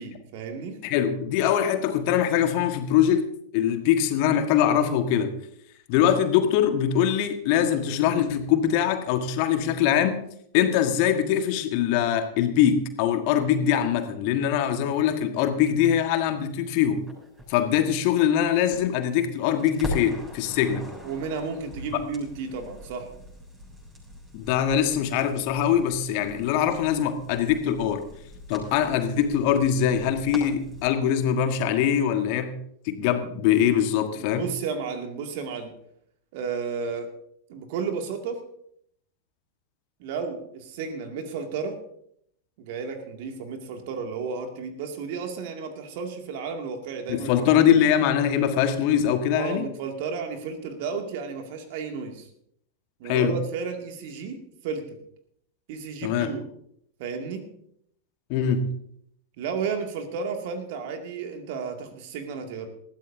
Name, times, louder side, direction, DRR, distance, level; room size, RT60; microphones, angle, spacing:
voice 1, 0.0-0.8 21.0-23.1 34.2-35.7 36.3-37.1 37.5-38.4 40.0-41.8 42.6-47.8 49.4-52.3 53.0-55.0 55.7-56.4 57.0-57.4 59.4-62.7, right 5 dB, 50° right, 4 dB, 2.4 m, -33 dB
voice 2, 0.8-3.3 3.5-5.3 5.9-10.2 10.5-17.0 17.5-20.9 24.3-28.0 28.5-32.5 32.8-34.4 47.1-49.6 53.0-53.3 56.0-56.3 58.3-58.7, left 9 dB, 45° left, 7 dB, 1.6 m, -23 dB
Crackle, 17.1-19.2 19.5-30.9, left 1 dB, 15° right, 7.5 m, -42 dB
20.0 x 15.0 x 2.8 m, 0.70 s
figure-of-eight pair, 90°, 0 cm